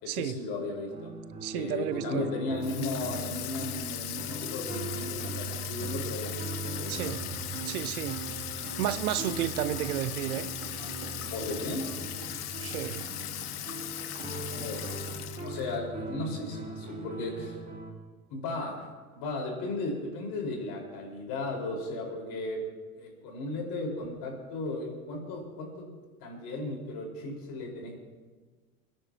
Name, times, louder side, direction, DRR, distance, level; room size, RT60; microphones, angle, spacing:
voice 1, 0.0-1.1 1.5-7.1 11.2-12.0 14.5-15.0 15.4-17.6 18.3-22.6 23.0-25.9 26.2-28.0, left 2 dB, 50° left, 0 dB, 4.9 m, -36 dB
sound 1, 0.9-17.9, right 2 dB, 15° right, 3.1 m, -40 dB
voice 2, 1.4-2.3 6.9-7.2 7.6-8.2 8.6-10.5 12.6-13.1, right 12 dB, 70° right, 15 dB, 0.9 m, -32 dB
Water tap faucet / Sink (filling or washing), 2.6-15.8, left 13 dB, 80° left, 0.8 m, -39 dB
sound 2, 4.7-17.4, right 2 dB, 45° right, 4.5 m, -49 dB
29.5 x 10.5 x 3.0 m, 1.4 s
hypercardioid pair, 85°, 45 cm